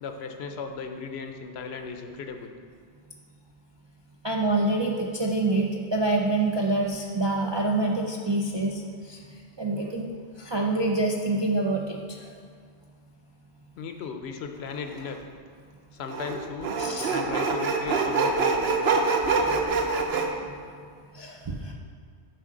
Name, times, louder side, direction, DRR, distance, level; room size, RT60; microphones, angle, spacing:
voice 1, 0.0-2.5 13.8-15.2 15.9-16.7 17.1-19.0, left 5 dB, 70° left, 5 dB, 0.8 m, -36 dB
voice 2, 4.2-9.2 9.6-10.1 10.4-12.3 16.8-17.1 19.7-19.8 20.1-20.2 21.1-21.7, right 2 dB, 45° right, -2 dB, 0.3 m, -26 dB
Sawing, 14.9-15.0 16.1-20.3, right 4 dB, 65° right, 0.9 m, -25 dB
7.7 x 5.3 x 3.8 m, 2.1 s
omnidirectional pair, 1.1 m